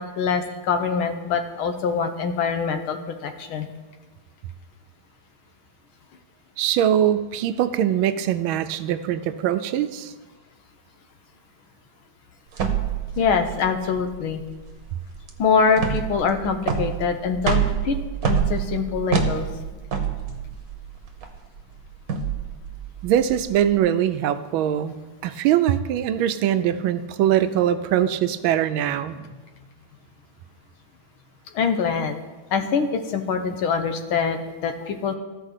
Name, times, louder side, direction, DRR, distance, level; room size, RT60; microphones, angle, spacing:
voice 1, 0.0-3.7 13.2-14.4 15.4-19.5 20.3-20.4 31.5-32.2 32.5-35.1, left 5 dB, 90° left, 7 dB, 1.7 m, -24 dB
voice 2, 6.6-10.1 23.0-25.0 25.2-29.3, right 10 dB, 80° right, 11 dB, 1.4 m, -22 dB
sound 1, 12.5-23.7, right 7 dB, 50° right, 1.3 m, -27 dB
13.5 x 4.9 x 6.5 m, 1.2 s
omnidirectional pair, 2.2 m